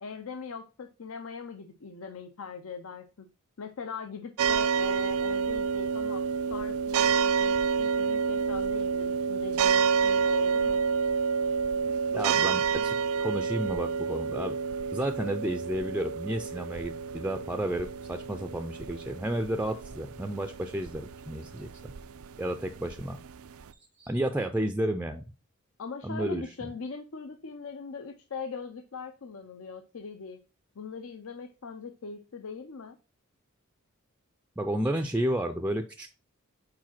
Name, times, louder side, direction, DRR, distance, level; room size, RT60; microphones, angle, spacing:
voice 1, 0.0-3.3 3.6-6.2 6.5-10.8 25.8-30.4 30.8-33.0, left 4 dB, 75° left, 7 dB, 0.6 m, -41 dB
sound 1, 4.4-23.7, right 5 dB, 80° right, 0.4 m, -29 dB
voice 2, 12.1-14.6 14.9-21.9 22.4-23.2 24.0-25.2 26.0-26.7 34.6-36.1, right 1 dB, 5° right, 6 dB, 0.4 m, -32 dB
4.8 x 4.7 x 5.8 m, 0.33 s
head